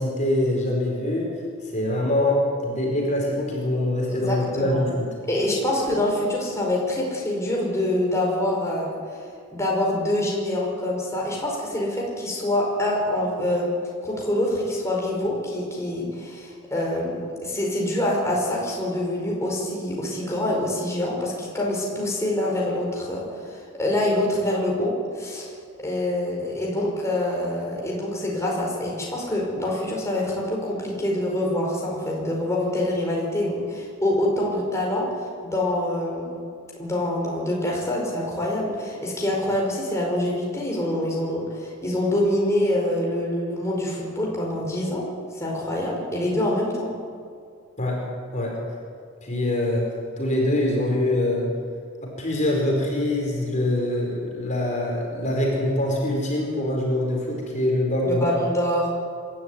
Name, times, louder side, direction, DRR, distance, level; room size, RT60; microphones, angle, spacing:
voice 1, 0.0-1.3 1.7-5.1 47.8-48.0 48.3-48.6 49.2-49.9 50.2-51.5 52.0-58.3, left 1 dB, 35° left, -1 dB, 4.9 m, -24 dB
voice 2, 4.1-4.8 5.3-9.2 9.5-13.8 14.0-25.5 25.8-36.4 36.8-45.1 45.3-46.9 58.0-58.9, left 1 dB, 15° left, -3 dB, 5.2 m, -25 dB
26.0 x 13.0 x 9.5 m, 2.2 s
head